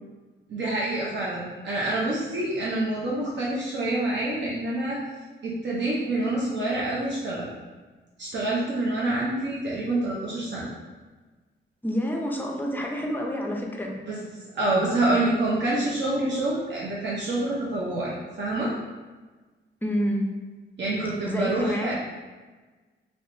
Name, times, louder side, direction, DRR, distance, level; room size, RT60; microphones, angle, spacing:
voice 1, 0.5-5.0 5.4-7.5 8.2-10.7 14.0-14.2 14.5-18.7 20.8-21.9, right 2 dB, 65° right, -6 dB, 0.7 m, -27 dB
voice 2, 11.8-13.9 19.8-20.2 21.3-21.9, equal, 10° left, 0 dB, 0.4 m, -28 dB
3.3 x 3.0 x 2.6 m, 1.3 s
wide cardioid pair, 145°, 21 cm